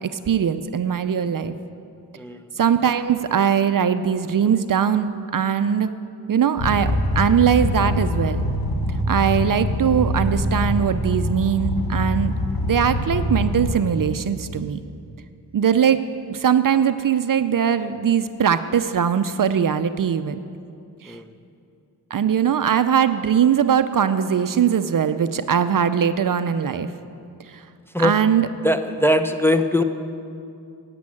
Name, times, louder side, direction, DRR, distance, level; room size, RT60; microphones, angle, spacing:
voice 1, 0.0-1.5 2.6-5.9 6.3-8.4 9.1-12.3 12.6-14.8 15.5-16.0 16.3-20.4 21.0-21.2 22.1-26.9 27.5-27.6 28.0-28.5, right 8 dB, 50° right, 11 dB, 0.6 m, -21 dB
sound 1, 6.6-13.8, left 1 dB, 55° left, 2.1 m, -24 dB
voice 2, 28.6-29.8, left 1 dB, 5° left, 6 dB, 0.7 m, -20 dB
11.0 x 8.6 x 8.6 m, 2.6 s
cardioid pair, 65°, 41 cm